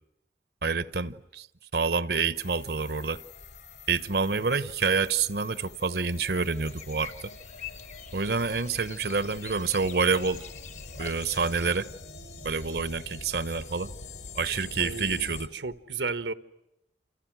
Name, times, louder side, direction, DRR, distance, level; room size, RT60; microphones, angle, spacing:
voice 1, 0.6-1.5 1.7-3.2 3.9-7.3 8.1-10.4 11.0-11.9 12.4-13.9 14.3-15.5, right 4 dB, 65° right, 1.0 m, -27 dB
sound 1, 2.3-15.5, left 3 dB, 75° left, 3.8 m, -45 dB
sound 2, 6.0-11.8, left 7 dB, 40° left, 1.1 m, -46 dB
voice 2, 14.8-16.3, right 4 dB, 90° right, 1.4 m, -34 dB
28.5 x 28.5 x 6.2 m
head